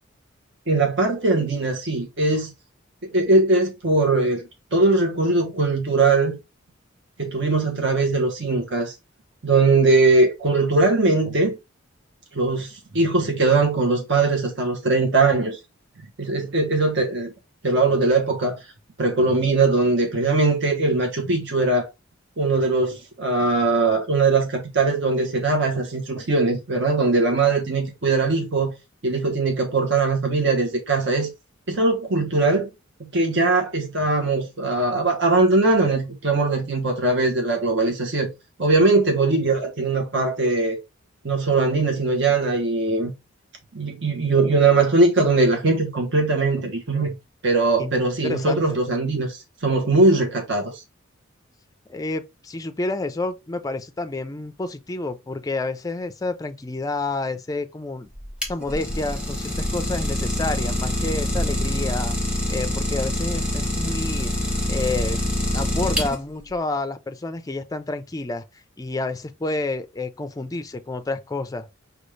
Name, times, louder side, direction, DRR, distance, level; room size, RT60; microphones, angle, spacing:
voice 1, 0.7-2.5 3.0-6.4 7.2-8.9 9.4-11.6 12.3-15.6 16.2-17.3 17.6-18.7 19.0-21.9 22.4-28.7 29.0-31.3 31.7-32.7 33.0-38.3 38.6-40.8 41.2-43.1 43.7-47.1 47.4-50.8, right 3 dB, 60° right, 0.9 m, -20 dB
voice 2, 48.2-48.8 51.9-58.1 58.5-62.2 62.5-65.2 65.5-68.4 68.8-71.7, left 2 dB, 20° left, 0.4 m, -29 dB
Idling, 58.1-66.5, left 1 dB, 5° right, 1.0 m, -25 dB
5.1 x 2.4 x 3.1 m
head